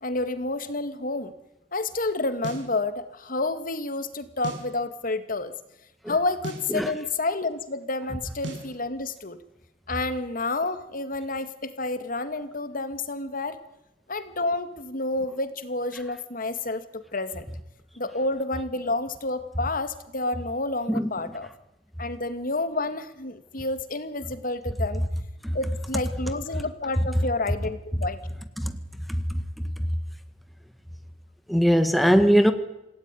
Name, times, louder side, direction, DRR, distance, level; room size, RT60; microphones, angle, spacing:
voice 1, 0.0-1.3 1.7-5.5 6.1-9.4 9.9-13.6 14.1-17.5 18.0-21.5 22.0-25.0 25.5-28.2, left 2 dB, 50° left, 11 dB, 2.1 m, -29 dB
sound 1, 2.4-2.7 4.4-4.7 6.4-6.7 8.4-8.7, right 1 dB, 85° right, 5.5 m, -36 dB
voice 2, 31.5-32.5, equal, ahead, 8 dB, 1.8 m, -20 dB
27.0 x 17.5 x 9.9 m, 0.92 s
head